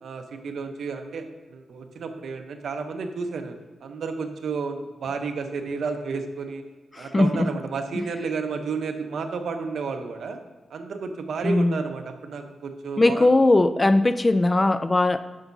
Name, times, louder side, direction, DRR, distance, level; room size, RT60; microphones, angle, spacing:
voice 1, 0.0-3.5 3.8-6.6 7.0-10.4 10.7-13.3, right 4 dB, 75° right, 6 dB, 0.8 m, -31 dB
voice 2, 6.9-7.5 7.9-8.1 11.4-11.8 13.0-15.2, left 2 dB, 20° left, 12 dB, 0.3 m, -20 dB
9.9 x 7.2 x 2.7 m, 1.3 s
wide cardioid pair, 110°, 0 cm